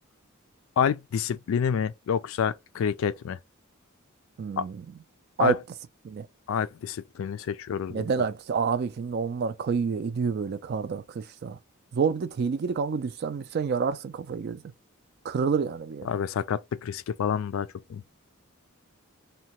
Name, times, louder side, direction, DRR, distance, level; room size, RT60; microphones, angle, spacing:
voice 1, 0.8-3.4 4.6-4.7 5.4-5.6 6.5-8.0 16.1-18.0, left 7 dB, 70° left, 0.3 m, -28 dB
voice 2, 4.4-4.9 5.4-5.6 6.0-6.3 7.9-11.6 11.9-14.6 15.2-16.1, right 5 dB, 50° right, 0.3 m, -28 dB
2.8 x 2.2 x 2.9 m
head